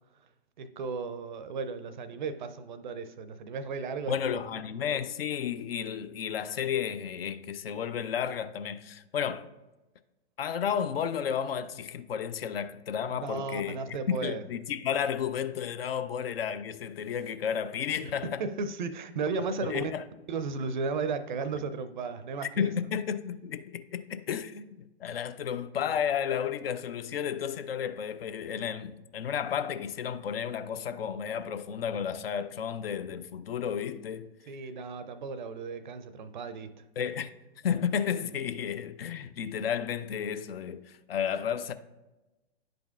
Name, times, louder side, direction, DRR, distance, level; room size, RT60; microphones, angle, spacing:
voice 1, 0.6-4.4 13.1-14.4 18.0-19.9 20.3-22.7 34.5-36.8, right 4 dB, 45° right, 0.5 m, -35 dB
voice 2, 4.1-9.5 10.4-18.4 19.6-20.0 22.6-34.3 37.0-37.3 37.6-41.7, left 8 dB, 60° left, 0.5 m, -32 dB
10.5 x 5.1 x 2.3 m
figure-of-eight pair, 120°, 33 cm